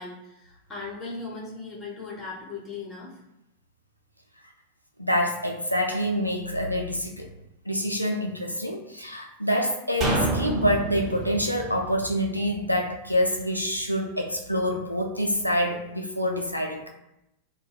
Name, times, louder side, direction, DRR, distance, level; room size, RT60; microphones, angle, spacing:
voice 1, 0.0-3.2, left 3 dB, 20° left, -4 dB, 0.9 m, -38 dB
voice 2, 5.0-7.3 7.7-16.8, equal, 90° left, 1 dB, 0.4 m, -26 dB
sound 1, 10.0-13.3 13.6-13.7, right 2 dB, 35° right, 0.9 m, -30 dB
2.2 x 2.1 x 3.2 m, 0.86 s
figure-of-eight pair, 90°, 0 cm